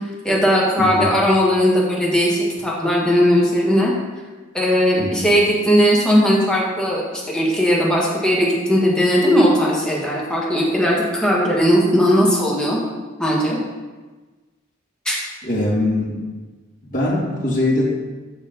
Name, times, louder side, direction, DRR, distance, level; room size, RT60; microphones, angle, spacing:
voice 1, 0.2-3.9 4.5-12.8 13.2-13.6 15.0-15.2, equal, 5° left, -5 dB, 1.4 m, -18 dB
voice 2, 0.8-1.2 5.0-5.3 15.4-16.2 16.8-17.9, left 1 dB, 45° left, -6 dB, 2.1 m, -22 dB
6.7 x 6.1 x 3.9 m, 1.3 s
head